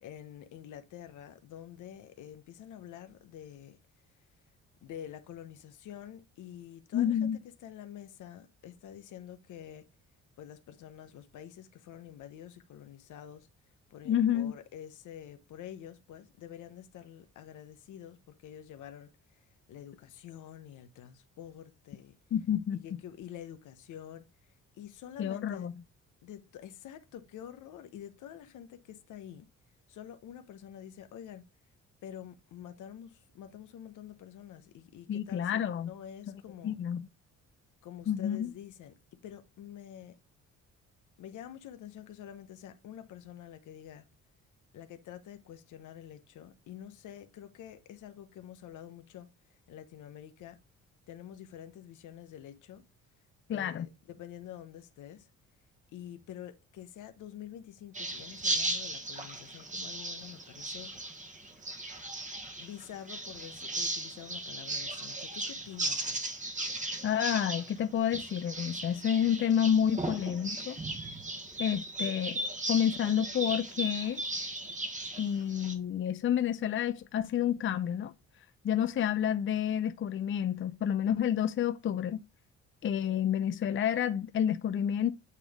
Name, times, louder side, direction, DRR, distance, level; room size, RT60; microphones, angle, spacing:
voice 1, 0.0-3.8 4.8-9.9 10.4-13.5 13.9-19.4 19.7-22.1 22.7-25.7 26.2-29.5 29.9-31.4 32.0-36.8 37.8-39.0 39.2-40.2 41.2-44.1 44.7-50.6 51.1-52.8 53.5-55.3 55.9-61.3 62.6-66.3, left 10 dB, 80° left, 1.0 m, -48 dB
voice 2, 6.9-7.4 14.1-14.5 22.3-22.8 25.2-25.7 35.1-35.9 36.6-37.1 38.1-38.5 53.5-53.9 67.0-70.8 71.6-72.4 72.7-74.2 75.2-78.1 78.6-82.2 82.8-85.1, left 9 dB, 40° left, 0.5 m, -29 dB
sound 1, 57.9-75.7, right 2 dB, 25° right, 1.4 m, -37 dB
8.4 x 3.3 x 3.5 m
cardioid pair, 90°, 30 cm